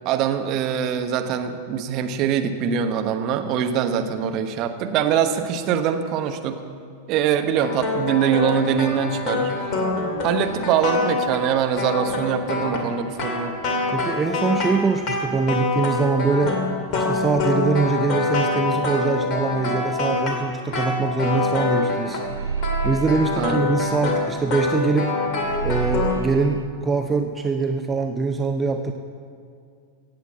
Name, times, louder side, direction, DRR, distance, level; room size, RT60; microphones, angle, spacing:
voice 1, 0.0-6.6 7.1-9.5 10.2-13.5 23.4-23.6, right 8 dB, 40° right, 6 dB, 1.1 m, -23 dB
sound 1, 7.6-22.3 22.6-26.2, left 3 dB, 35° left, 2.3 m, -25 dB
voice 2, 13.9-16.6 16.9-22.2 22.8-25.1 25.6-28.9, right 4 dB, 15° right, 5 dB, 0.6 m, -23 dB
sound 2, 22.2-24.7 25.0-25.1 25.4-26.7, right 7 dB, 75° right, 0.3 m, -29 dB
16.5 x 8.2 x 7.4 m, 2.3 s
figure-of-eight pair, 90°, 0 cm